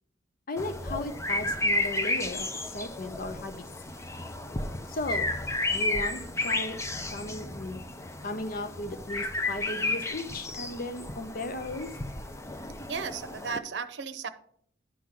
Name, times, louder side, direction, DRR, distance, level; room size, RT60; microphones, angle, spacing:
voice 1, 0.5-3.7 4.9-5.4 5.7-6.8 7.1-7.8 8.2-11.9, left 2 dB, 55° left, 8 dB, 0.7 m, -36 dB
sound 1, 0.6-13.6, left 2 dB, 15° left, 0.6 m, -32 dB
voice 2, 12.9-14.3, right 5 dB, 70° right, 11 dB, 0.7 m, -35 dB
11.0 x 3.7 x 5.9 m, 0.64 s
head